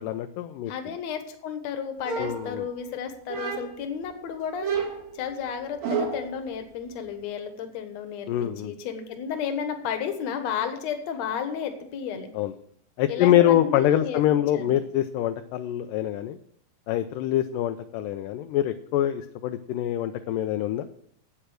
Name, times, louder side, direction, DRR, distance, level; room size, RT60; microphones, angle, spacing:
voice 1, 0.0-0.7 2.2-2.7 8.3-8.8 12.3-12.5 13.0-16.4 16.9-20.9, left 12 dB, 80° left, 8 dB, 2.0 m, -25 dB
voice 2, 0.7-4.7 5.1-12.3 13.1-14.2 14.5-14.8, left 7 dB, 60° left, 7 dB, 2.1 m, -32 dB
sound 1, 2.0-2.9 3.3-3.9 4.6-6.4, right 6 dB, 60° right, 2.4 m, -31 dB
10.0 x 8.6 x 6.2 m, 0.69 s
omnidirectional pair, 4.2 m